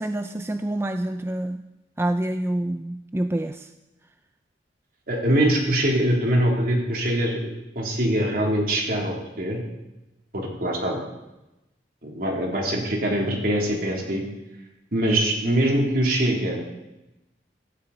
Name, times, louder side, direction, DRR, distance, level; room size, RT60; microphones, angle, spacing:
voice 1, 0.0-1.6 2.0-3.7, right 1 dB, 15° right, 8 dB, 0.4 m, -27 dB
voice 2, 5.1-9.6 10.3-11.0 12.0-14.2 14.9-16.6, right 1 dB, 55° right, 0 dB, 3.3 m, -23 dB
15.5 x 14.5 x 4.2 m, 0.97 s
head